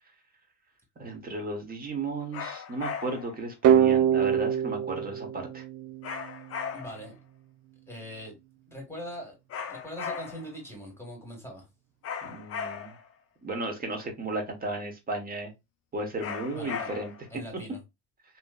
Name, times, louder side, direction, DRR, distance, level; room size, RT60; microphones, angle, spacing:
voice 1, 1.0-5.6 12.2-13.0 13.4-15.5 15.9-17.1, right 2 dB, 20° right, 1.2 m, -34 dB
sound 1, 2.3-3.4 6.0-7.1 9.5-10.6 12.0-13.1 16.2-17.3, left 6 dB, 30° left, 0.6 m, -37 dB
sound 2, 3.6-6.4, right 9 dB, 40° right, 0.4 m, -24 dB
voice 2, 6.7-7.2 7.9-8.4 8.7-9.4 9.7-11.7 16.5-16.9 17.3-17.8, equal, 5° left, 1.4 m, -41 dB
3.1 x 2.9 x 2.3 m
supercardioid pair, 100°, 45 cm